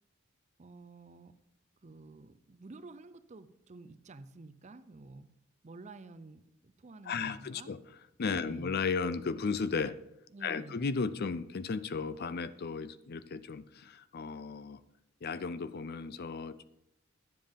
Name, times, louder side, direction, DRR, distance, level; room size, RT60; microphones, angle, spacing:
voice 1, 0.6-1.3 1.8-5.3 5.6-7.7 8.4-8.7 10.3-10.9, right 3 dB, 35° right, 12 dB, 0.5 m, -51 dB
voice 2, 7.1-7.8 8.2-10.0 10.4-14.8 15.2-16.6, left 5 dB, 45° left, 15 dB, 0.5 m, -35 dB
10.5 x 7.6 x 5.2 m, 0.83 s
head